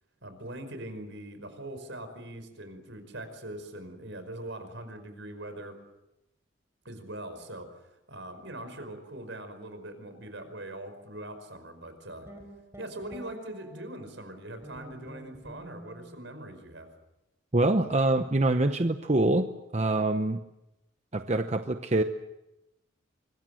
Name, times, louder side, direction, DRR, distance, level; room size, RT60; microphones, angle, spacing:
voice 1, 0.2-5.8 6.9-7.7 8.1-12.3 12.8-16.9, right 1 dB, 75° right, 9 dB, 5.2 m, -42 dB
sound 1, 12.3-14.1 14.6-16.2, right 1 dB, 15° right, 4.5 m, -47 dB
voice 2, 17.5-19.5 19.7-20.4 21.1-22.0, right 2 dB, 35° right, 7 dB, 0.9 m, -25 dB
25.0 x 22.0 x 7.8 m, 0.94 s
head